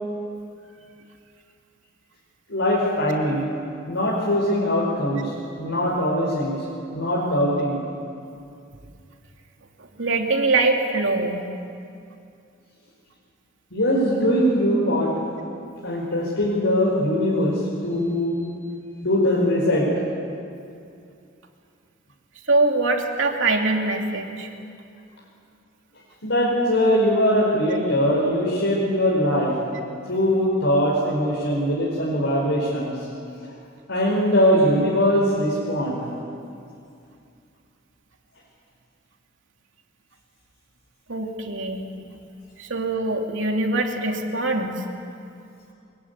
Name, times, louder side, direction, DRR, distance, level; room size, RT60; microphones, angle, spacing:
voice 1, 2.5-3.5 3.9-5.3 5.6-6.6 6.9-7.8 13.7-15.1 15.8-18.4 19.0-19.9 26.2-29.6 30.1-33.1 33.9-36.1, equal, 70° left, -5 dB, 5.3 m, -21 dB
voice 2, 9.8-11.4 22.5-24.5 41.1-41.8 42.6-44.9, right 3 dB, 70° right, 2 dB, 2.9 m, -23 dB
24.0 x 22.5 x 9.7 m, 2.5 s
head